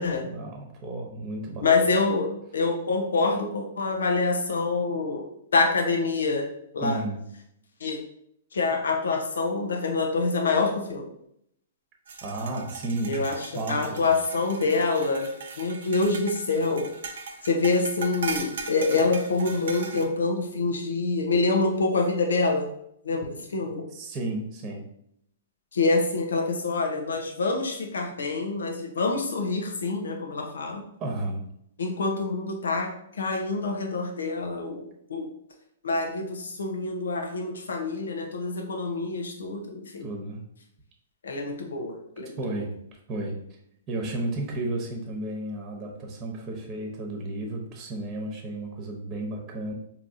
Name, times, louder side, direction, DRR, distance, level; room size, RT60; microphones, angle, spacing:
voice 1, 0.3-1.6 6.8-7.2 12.2-13.2 13.5-14.1 23.9-24.9 31.0-31.4 40.0-40.4 42.4-42.7 43.1-43.4 43.9-49.7, right 2 dB, 30° right, 1 dB, 1.1 m, -32 dB
voice 2, 1.6-5.3 5.5-6.5 6.7-7.0 7.8-8.0 8.5-11.1 13.1-15.3 15.6-16.9 17.4-22.7 23.0-23.8 25.7-30.8 31.8-35.3 35.8-40.1 41.2-42.4, left 3 dB, 75° left, 2 dB, 0.8 m, -26 dB
sound 1, 12.1-20.0, right 4 dB, 70° right, 0.7 m, -38 dB
4.6 x 2.9 x 2.7 m, 0.73 s
hypercardioid pair, 120°, 0 cm